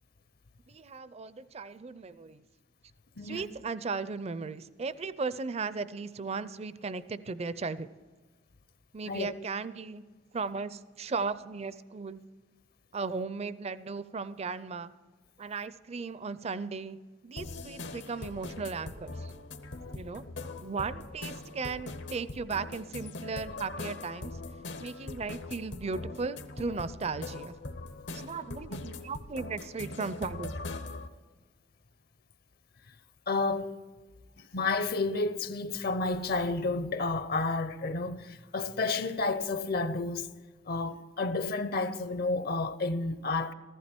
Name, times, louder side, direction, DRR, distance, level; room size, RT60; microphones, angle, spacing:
voice 1, 0.7-2.4 3.2-7.9 8.9-10.0 10.3-12.2 12.9-14.9 15.4-17.0 17.2-19.3 19.9-20.2 20.6-24.4 24.8-27.5 28.1-30.5, right 4 dB, 35° right, 0.5 m, -36 dB
sound 1, 17.4-31.1, left 2 dB, 80° left, 1.0 m, -41 dB
voice 2, 33.3-33.7 34.5-40.3 40.7-43.5, left 3 dB, 55° left, 0.7 m, -31 dB
14.5 x 14.5 x 4.4 m
head